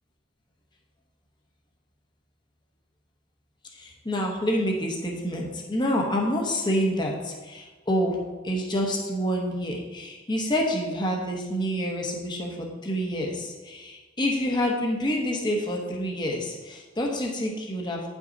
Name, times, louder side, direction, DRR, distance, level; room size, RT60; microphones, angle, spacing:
voice 1, 3.7-8.2 8.4-18.0, equal, 20° left, -1 dB, 1.1 m, -27 dB
9.4 x 6.1 x 4.0 m, 1.2 s
head